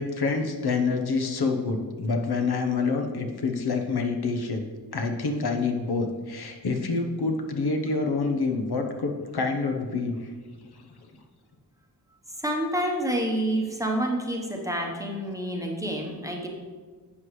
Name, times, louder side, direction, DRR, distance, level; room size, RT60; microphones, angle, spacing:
voice 1, 0.0-10.3 10.7-10.8, left 4 dB, 65° left, 3 dB, 1.0 m, -27 dB
voice 2, 12.4-16.5, right 1 dB, 10° right, 0 dB, 1.0 m, -28 dB
11.5 x 7.8 x 3.2 m, 1.5 s
wide cardioid pair, 160°, 41 cm